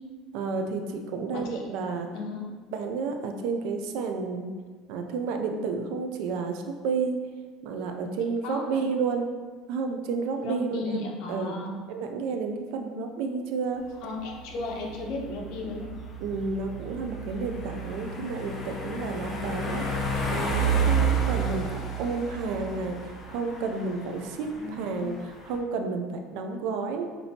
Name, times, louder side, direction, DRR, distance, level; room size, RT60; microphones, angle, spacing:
voice 1, 0.3-2.1 2.7-4.5 4.9-7.2 7.6-9.3 9.7-11.6 11.9-13.8 16.2-23.0 23.3-25.2 25.4-27.0, right 4 dB, 70° right, 5 dB, 0.5 m, -31 dB
voice 2, 2.1-2.5 8.4-8.8 10.4-11.8 14.0-15.9 24.6-25.0, left 2 dB, 65° left, 0 dB, 0.8 m, -35 dB
sound 1, 13.9-25.6, right 4 dB, 30° left, 0.7 m, -31 dB
5.9 x 2.7 x 2.8 m, 1.5 s
cardioid pair, 135°, 0 cm